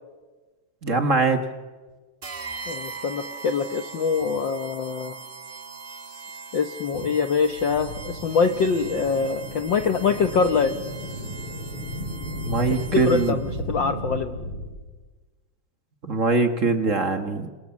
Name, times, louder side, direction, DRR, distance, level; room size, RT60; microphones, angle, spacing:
voice 1, 0.8-1.4 12.4-13.4 16.0-17.5, right 3 dB, 40° right, 7 dB, 1.1 m, -22 dB
sound 1, 2.2-13.6, right 4 dB, 65° right, 0.5 m, -40 dB
voice 2, 2.7-5.1 6.5-10.7 12.6-13.4 13.7-14.3, left 5 dB, 80° left, 8 dB, 1.0 m, -24 dB
sound 2, 7.4-14.7, equal, 45° left, 7.5 m, -34 dB
29.0 x 27.5 x 7.3 m, 1.3 s
omnidirectional pair, 3.6 m